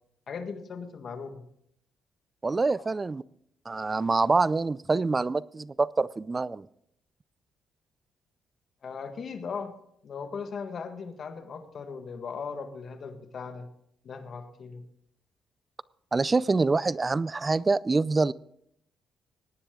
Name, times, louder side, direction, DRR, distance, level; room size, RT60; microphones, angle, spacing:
voice 1, 0.3-1.4 2.7-2.8 8.8-9.7 10.0-13.7 14.0-14.9, left 5 dB, 50° left, 7 dB, 1.7 m, -38 dB
voice 2, 2.4-3.2 3.7-6.7 16.1-18.3, right 3 dB, 25° right, 20 dB, 0.4 m, -25 dB
18.0 x 10.0 x 3.8 m, 0.72 s
cardioid pair, 90°, 0 cm